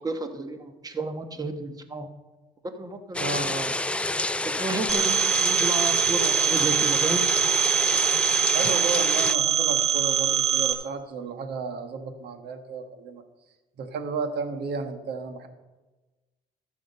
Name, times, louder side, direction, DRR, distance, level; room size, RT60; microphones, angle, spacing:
voice 1, 0.0-2.1 2.6-3.4 4.4-7.2, right 2 dB, 20° right, 8 dB, 1.2 m, -32 dB
sound 1, 3.1-9.3, left 2 dB, 5° left, 0.4 m, -28 dB
voice 2, 3.2-3.8 8.5-13.2 13.8-15.5, right 4 dB, 75° right, 8 dB, 1.4 m, -33 dB
Telephone, 4.9-10.7, right 9 dB, 40° right, 1.4 m, -23 dB
12.5 x 7.6 x 5.4 m, 1.2 s
cardioid pair, 110°, 17 cm